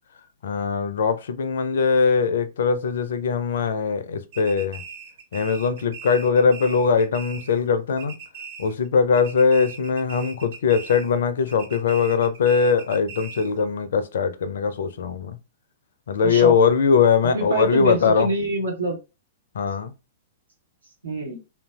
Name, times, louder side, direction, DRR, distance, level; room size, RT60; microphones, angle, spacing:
voice 1, 0.4-4.8 5.3-8.2 8.6-15.4 16.1-18.3 19.5-19.9, left 5 dB, 65° left, 0.4 m, -21 dB
sound 1, 4.3-7.7 8.0-8.9 9.1-11.2 11.5-13.6, right 6 dB, 55° right, 1.0 m, -40 dB
voice 2, 16.2-16.5 17.3-19.0 21.0-21.4, right 2 dB, 80° right, 1.3 m, -26 dB
2.8 x 2.5 x 2.3 m
figure-of-eight pair, 105°, 0 cm